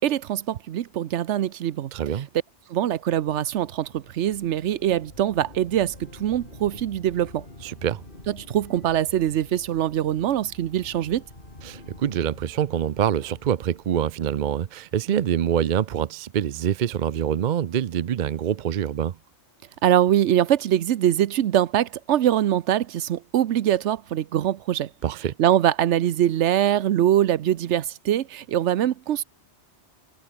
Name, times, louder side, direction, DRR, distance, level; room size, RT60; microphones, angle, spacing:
voice 1, 0.0-1.9 2.7-7.5 8.3-11.2 19.8-24.9 25.4-29.2, right 11 dB, 90° right, 1.0 m, -23 dB
voice 2, 1.9-2.3 7.6-8.0 11.6-19.2 25.0-25.3, right 9 dB, 55° right, 0.6 m, -25 dB
sound 1, 2.9-14.9, left 1 dB, 50° left, 5.1 m, -47 dB
omnidirectional pair, 1.2 m